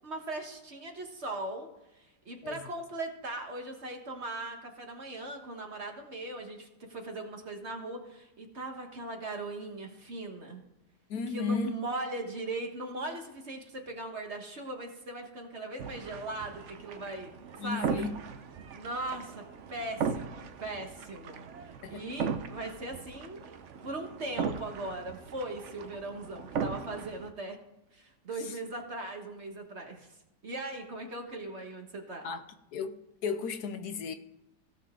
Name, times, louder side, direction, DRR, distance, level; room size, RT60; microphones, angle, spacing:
voice 1, 0.0-10.6 11.3-17.3 17.6-18.1 18.7-19.4 19.7-23.4 23.8-27.6 27.9-30.2 30.4-32.3, right 2 dB, 40° right, 1.5 m, -39 dB
voice 2, 11.1-11.7 17.6-18.1 21.8-22.0 28.4-28.6 32.2-32.4 32.7-34.1, left 5 dB, 70° left, 1.2 m, -34 dB
sound 1, 15.8-27.3, right 6 dB, 55° right, 0.8 m, -38 dB
16.5 x 6.7 x 3.7 m
omnidirectional pair, 1.8 m